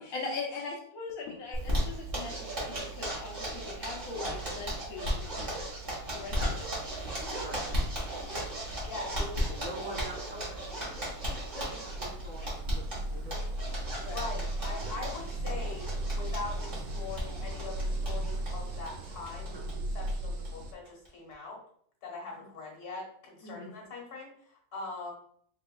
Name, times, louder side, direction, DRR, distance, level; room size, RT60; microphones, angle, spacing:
voice 1, 0.0-5.3 6.1-6.7 12.4-12.5 14.0-14.3 22.3-22.4 23.4-23.7, left 3 dB, 65° left, 0 dB, 1.3 m, -40 dB
Zipper (clothing), 1.5-19.7 20.0-20.1 20.4-20.5 20.9-21.3, equal, 35° right, 1.6 m, -36 dB
sound 1, 3.5-20.7, right 1 dB, 85° right, 1.1 m, -38 dB
voice 2, 7.3-7.6 9.5-10.9 11.3-13.7 17.0-17.2 19.5-19.8, equal, 60° right, -6 dB, 1.4 m, -45 dB
voice 3, 8.8-9.8 14.0-15.9 16.1-21.6 22.0-25.1, left 3 dB, 85° left, -1 dB, 1.8 m, -42 dB
4.1 x 4.0 x 2.3 m, 0.63 s
omnidirectional pair, 1.6 m